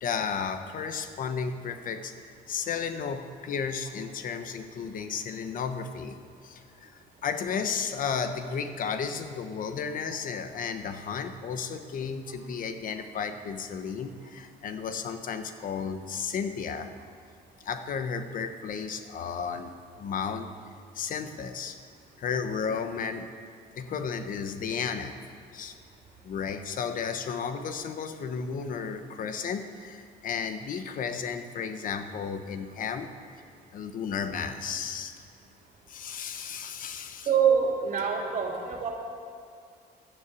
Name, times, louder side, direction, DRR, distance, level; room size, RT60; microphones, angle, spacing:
voice 1, 0.0-2.1 2.5-6.2 6.4-16.9 17.6-19.7 20.0-20.5 20.9-21.8 22.2-23.3 23.8-25.2 25.5-25.7 26.2-33.1 33.7-35.1 35.9-37.3, left 6 dB, 55° left, 9 dB, 1.0 m, -33 dB
voice 2, 37.3-38.9, right 7 dB, 50° right, 0 dB, 2.9 m, -25 dB
12.0 x 9.6 x 8.2 m, 2.4 s
cardioid pair, 110°, 17 cm